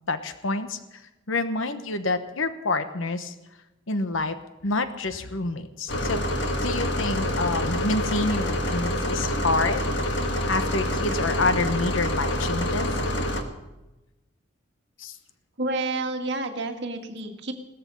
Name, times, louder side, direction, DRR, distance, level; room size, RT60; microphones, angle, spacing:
voice 1, 0.1-1.0 1.3-3.3 3.9-4.4 4.6-6.2 6.6-9.9 10.5-12.9 15.0-15.2, left 3 dB, 85° left, 10 dB, 1.1 m, -27 dB
sound 1, 5.9-13.4, left 1 dB, 60° left, 1.7 m, -27 dB
voice 2, 15.6-17.5, right 2 dB, 60° right, 4 dB, 2.0 m, -29 dB
17.5 x 13.5 x 5.5 m, 1.0 s
head